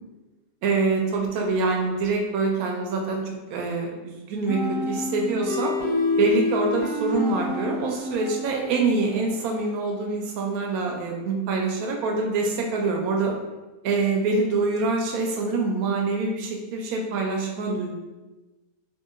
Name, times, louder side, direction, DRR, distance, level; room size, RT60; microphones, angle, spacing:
voice 1, 0.6-3.2 3.5-4.6 4.9-5.7 6.2-13.3 13.8-18.0, right 3 dB, 85° right, 0 dB, 1.1 m, -25 dB
sound 1, 4.5-9.1, left 2 dB, 80° left, 1.6 m, -28 dB
2.8 x 2.8 x 2.4 m, 1.2 s
omnidirectional pair, 1.5 m